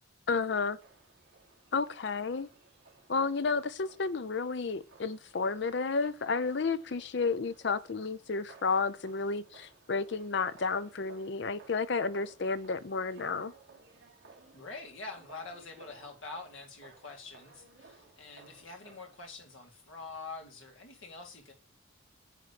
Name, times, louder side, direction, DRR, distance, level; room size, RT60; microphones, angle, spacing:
voice 1, 0.3-0.8 1.7-2.5 3.1-13.5, left 4 dB, 55° left, 0.5 m, -31 dB
sound 1, 0.8-19.2, right 4 dB, 60° right, 2.0 m, -59 dB
voice 2, 14.5-21.5, left 3 dB, 75° left, 2.0 m, -45 dB
9.1 x 3.1 x 6.6 m
head